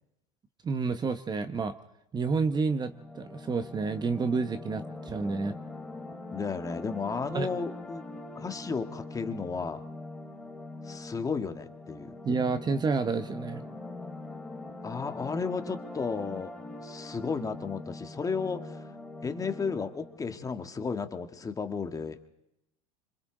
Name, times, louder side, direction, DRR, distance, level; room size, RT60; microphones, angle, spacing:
voice 1, 0.6-1.7 2.1-5.6 7.3-7.5 12.2-13.6, right 4 dB, 20° right, 10 dB, 1.1 m, -29 dB
sound 1, 2.8-20.2, left 2 dB, 5° left, 2.6 m, -42 dB
voice 2, 6.3-8.0 8.4-9.8 10.9-12.2 14.8-16.5 16.8-18.9 19.2-22.3, left 5 dB, 20° left, 7 dB, 1.7 m, -33 dB
27.0 x 26.0 x 3.9 m, 0.84 s
supercardioid pair, 115°, 19 cm